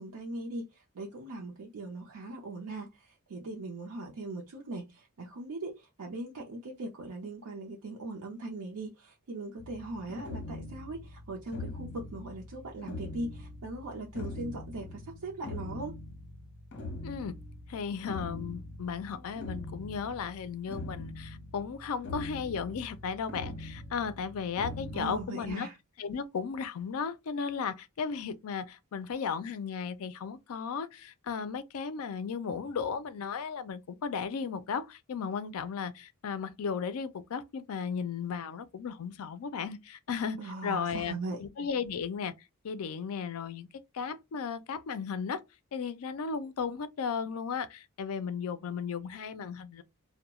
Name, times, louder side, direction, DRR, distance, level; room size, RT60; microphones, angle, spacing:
voice 1, 0.0-16.0 24.9-25.8 40.4-41.4, right 2 dB, 80° right, 0.5 m, -40 dB
sound 1, 9.6-25.3, left 2 dB, 50° left, 0.8 m, -43 dB
voice 2, 17.0-17.4 17.7-25.7 26.0-41.1 41.4-42.3 42.6-43.7 43.9-45.4 45.7-49.8, left 6 dB, 70° left, 0.4 m, -35 dB
2.2 x 2.1 x 2.9 m
head